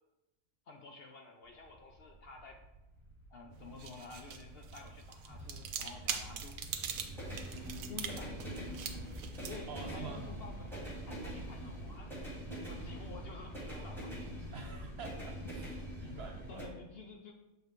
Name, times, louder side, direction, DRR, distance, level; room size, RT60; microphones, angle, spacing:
voice 1, 0.7-2.6 3.3-6.6 7.9-8.5 9.4-12.1 12.7-14.2 16.5-17.3, left 4 dB, 55° left, 3 dB, 0.7 m, -51 dB
sound 1, 1.4-16.6, equal, ahead, 1.6 m, -44 dB
sound 2, 3.5-12.0, right 8 dB, 80° right, 1.1 m, -44 dB
voice 2, 9.7-10.3 10.6-10.7 14.5-15.7 16.0-16.7, right 4 dB, 55° right, 3 dB, 0.8 m, -47 dB
6.9 x 5.3 x 3.1 m, 0.99 s
omnidirectional pair, 1.4 m